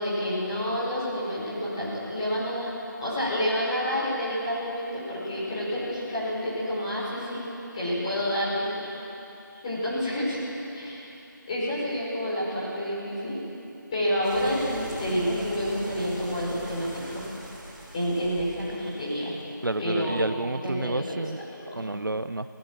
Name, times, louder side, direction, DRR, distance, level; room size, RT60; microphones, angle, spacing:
voice 1, 0.0-2.7 3.0-7.4 7.7-8.9 9.5-10.4 10.7-11.1 11.5-13.4 13.9-17.2 17.9-19.3 19.8-20.2 20.6-21.2 21.5-21.9, equal, 15° left, -8 dB, 5.1 m, -29 dB
sound 1, 14.2-19.7, right 1 dB, 20° right, 4.7 m, -42 dB
voice 2, 19.6-21.4 21.7-22.5, right 2 dB, 75° right, 13 dB, 0.8 m, -30 dB
21.5 x 17.0 x 7.7 m, 2.8 s
figure-of-eight pair, 170°, 11 cm